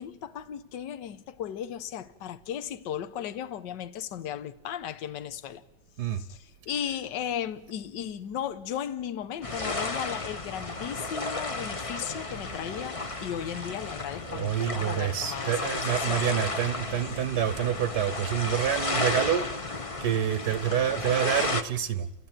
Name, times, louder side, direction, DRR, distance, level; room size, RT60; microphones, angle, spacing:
voice 1, 0.0-5.6 6.1-15.8 16.1-16.3, left 9 dB, 65° left, 1.6 m, -36 dB
sound 1, 9.4-21.6, left 2 dB, 25° left, 0.8 m, -33 dB
voice 2, 14.2-19.5 20.0-22.1, right 10 dB, 60° right, 1.4 m, -27 dB
30.0 x 15.0 x 9.0 m
omnidirectional pair, 2.2 m